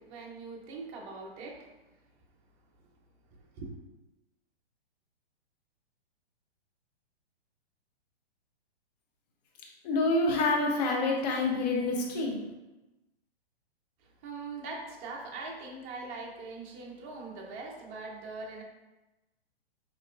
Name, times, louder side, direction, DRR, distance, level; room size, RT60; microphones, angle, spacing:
voice 1, 0.0-1.7 3.3-3.8 14.0-18.6, right 3 dB, 20° right, 0 dB, 0.5 m, -42 dB
voice 2, 9.8-12.3, left 2 dB, 40° left, -1 dB, 0.9 m, -27 dB
4.8 x 2.9 x 2.4 m, 1.0 s
hypercardioid pair, 140°, 32 cm